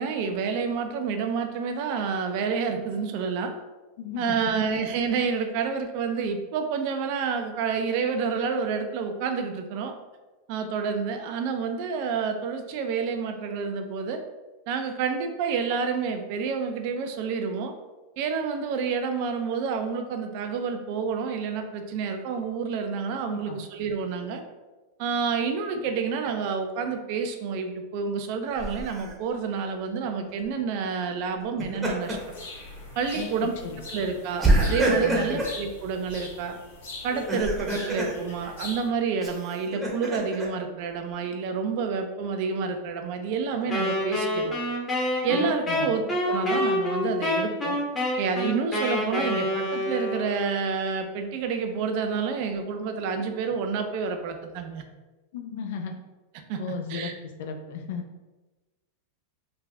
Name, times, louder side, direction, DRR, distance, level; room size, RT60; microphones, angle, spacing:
voice 1, 0.0-3.5 4.2-9.9 10.5-14.2 14.7-17.7 18.2-24.4 25.0-32.2 33.0-33.5 33.9-36.5 37.0-44.6 45.2-47.8 48.2-54.8 56.5-56.6 56.9-57.1, right 5 dB, 55° right, 6 dB, 0.5 m, -29 dB
voice 2, 4.0-4.5 23.3-23.6 33.1-33.8 35.0-35.4 45.3-45.9 55.3-56.0 56.6-58.0, left 6 dB, 70° left, 4 dB, 0.5 m, -35 dB
Laughter, 28.6-29.1 31.4-32.3 32.8-32.9 34.4-35.6 37.1-38.1 39.2-40.5, right 1 dB, 10° right, 0.9 m, -26 dB
sound 1, 32.0-38.9, left 2 dB, 85° left, 1.2 m, -42 dB
Wind instrument woodwind instrument, 43.7-50.5, left 1 dB, 20° left, 1.1 m, -27 dB
3.5 x 2.5 x 3.3 m, 1.2 s
hypercardioid pair, 125°, 0 cm